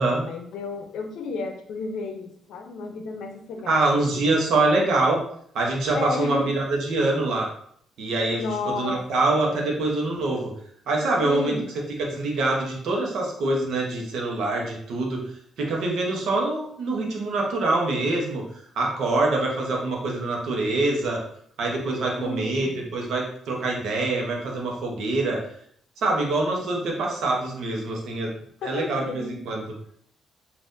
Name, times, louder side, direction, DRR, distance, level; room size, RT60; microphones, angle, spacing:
voice 1, 0.0-4.8 5.9-6.5 8.4-9.0 9.5-9.7 11.2-11.7 22.2-22.8 28.6-29.6, left 3 dB, 80° left, 4 dB, 0.5 m, -33 dB
voice 2, 3.7-5.2 5.5-7.5 8.0-10.5 10.9-11.6 12.0-15.2 15.6-18.4 18.7-21.2 21.6-25.4 26.0-28.3 28.6-29.6, right 2 dB, 75° right, -1 dB, 0.9 m, -25 dB
3.5 x 2.5 x 2.6 m, 0.65 s
cardioid pair, 90°, 0 cm